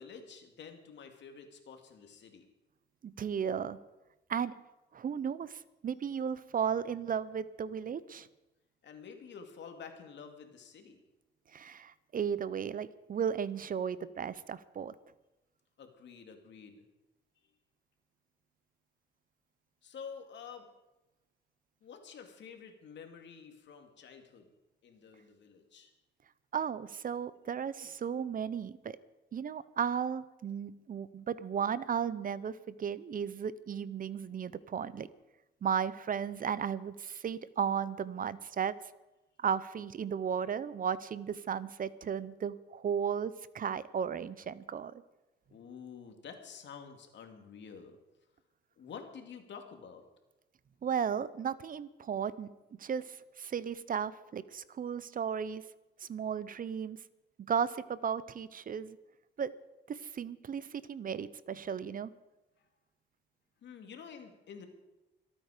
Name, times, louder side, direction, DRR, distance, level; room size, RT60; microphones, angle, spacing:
voice 1, 0.0-2.5 8.8-11.0 15.8-16.8 19.8-20.7 21.8-24.5 24.8-25.9 45.5-48.0 48.8-50.0 62.6-62.7 63.6-64.7, left 6 dB, 65° left, 5 dB, 2.5 m, -49 dB
voice 2, 3.0-3.8 4.3-4.5 4.9-8.3 11.5-14.9 26.5-29.0 29.3-35.1 35.6-38.8 39.4-45.0 50.8-55.6 56.0-57.0 57.4-59.0 59.4-59.5 59.9-62.1, right 7 dB, 45° right, 17 dB, 0.7 m, -35 dB
25.5 x 9.1 x 5.1 m, 1.0 s
cardioid pair, 90°, 20 cm